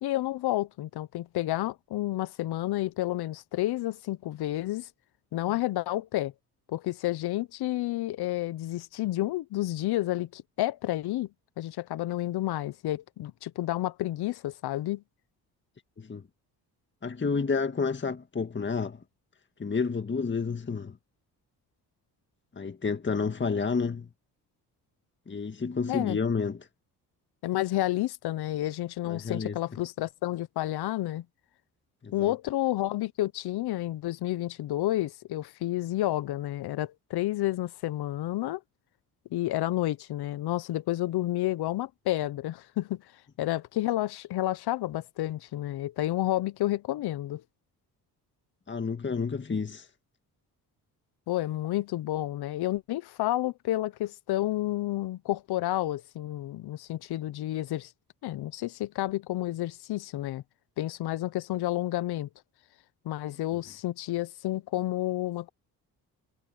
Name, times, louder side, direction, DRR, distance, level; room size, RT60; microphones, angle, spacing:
voice 1, 0.0-4.9 5.3-6.3 6.7-11.3 11.6-15.0 25.9-26.2 27.4-31.2 32.1-38.6 39.3-43.0 43.4-47.4 51.3-57.9 58.2-60.4 60.8-62.3 63.0-65.5, left 15 dB, 75° left, 1.0 m, -30 dB
voice 2, 17.0-19.0 19.6-21.0 22.6-24.1 25.3-26.6 29.1-29.6 32.0-32.3 48.7-49.9, left 5 dB, 30° left, 1.8 m, -30 dB
supercardioid pair, 70°, 39 cm